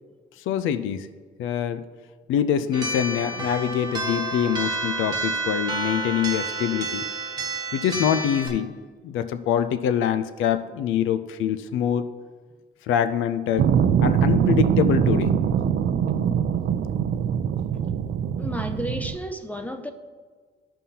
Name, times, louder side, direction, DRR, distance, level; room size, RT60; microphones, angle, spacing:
voice 1, 0.4-1.1 1.4-1.8 2.3-7.1 7.7-8.7 9.0-12.1 12.8-13.7 14.0-15.4, left 9 dB, 85° left, 12 dB, 0.4 m, -24 dB
sound 1, 2.7-8.5, right 2 dB, 20° right, 1.3 m, -29 dB
sound 2, 13.6-19.2, right 8 dB, 60° right, 0.5 m, -22 dB
voice 2, 18.4-19.9, equal, 5° left, 6 dB, 0.5 m, -32 dB
12.5 x 5.4 x 2.9 m, 1.5 s
cardioid pair, 90°, 20 cm